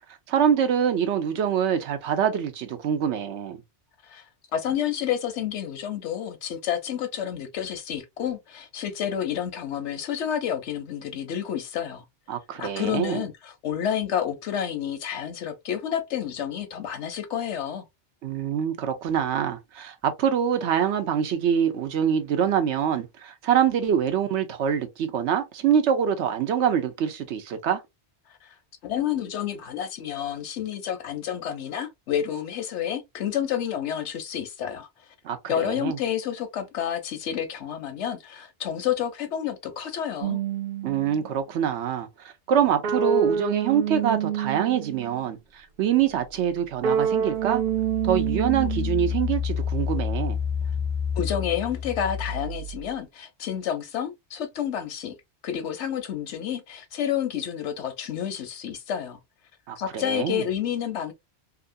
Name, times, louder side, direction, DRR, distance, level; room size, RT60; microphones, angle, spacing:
voice 1, 0.3-3.6 12.3-13.2 18.2-27.8 35.2-36.0 40.8-42.1 42.5-47.6 48.0-50.4 59.7-60.4, right 8 dB, 85° right, 1.0 m, -25 dB
voice 2, 4.5-12.0 12.6-17.9 28.4-28.6 28.8-34.9 35.5-40.4 51.1-55.2 55.4-59.2 59.8-61.1, left 9 dB, 85° left, 1.0 m, -29 dB
sound 1, 40.2-41.3 42.8-45.2 46.8-49.3, right 8 dB, 55° right, 0.6 m, -27 dB
Engine, 46.3-46.4 47.0-52.9, left 7 dB, 50° left, 0.8 m, -30 dB
2.9 x 2.5 x 2.5 m
omnidirectional pair, 1.1 m